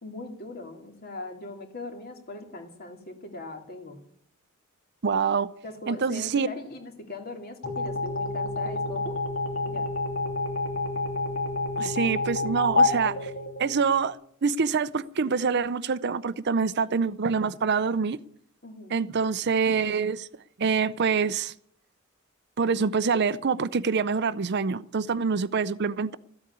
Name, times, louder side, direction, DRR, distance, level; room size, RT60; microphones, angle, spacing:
voice 1, 0.0-4.0 5.6-9.2 9.7-9.9 18.6-19.1, left 2 dB, 50° left, 2.5 m, -40 dB
voice 2, 5.0-5.5 5.9-6.5 11.8-13.3 13.6-14.2 14.4-18.2 18.9-20.3 20.6-21.5 22.6-26.2, right 5 dB, 55° right, 0.6 m, -25 dB
sound 1, 7.6-14.1, left 3 dB, 75° left, 3.0 m, -28 dB
14.0 x 8.5 x 9.6 m
head